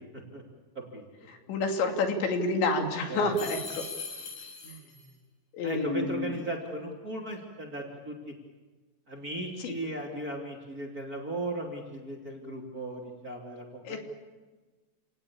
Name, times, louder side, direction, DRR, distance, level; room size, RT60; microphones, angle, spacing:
voice 1, 1.3-3.8 4.1-4.2 4.6-4.8 5.5-6.4 9.6-9.7 13.8-14.0, left 3 dB, 80° left, 3 dB, 5.0 m, -29 dB
sound 1, 3.3-5.1, left 4 dB, 50° left, 8.9 m, -40 dB
voice 2, 5.6-8.3 9.1-14.0, right 1 dB, 25° right, 0 dB, 2.7 m, -36 dB
29.5 x 19.0 x 8.7 m, 1.3 s
omnidirectional pair, 5.1 m